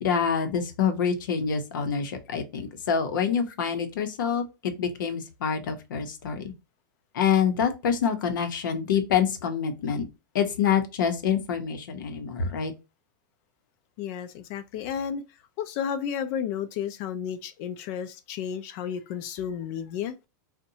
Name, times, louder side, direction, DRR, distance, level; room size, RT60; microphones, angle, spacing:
voice 1, 0.0-6.5 7.1-10.0 10.3-12.7, left 7 dB, 85° left, 0.7 m, -26 dB
voice 2, 14.0-15.2 15.6-20.2, left 8 dB, 50° left, 0.4 m, -32 dB
2.6 x 2.1 x 2.7 m
supercardioid pair, 135°, 10 cm